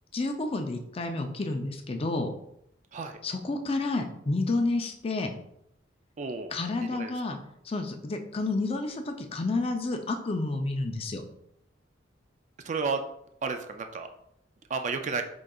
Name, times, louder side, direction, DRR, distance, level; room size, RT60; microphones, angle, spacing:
voice 1, 0.1-2.3 3.2-5.3 6.5-7.4 7.6-11.2, left 2 dB, 30° left, 5 dB, 0.4 m, -30 dB
voice 2, 6.2-6.5 6.9-7.1 12.6-13.0 13.4-14.1 14.7-15.2, right 4 dB, 40° right, 7 dB, 0.3 m, -31 dB
5.1 x 3.7 x 2.3 m, 0.75 s
head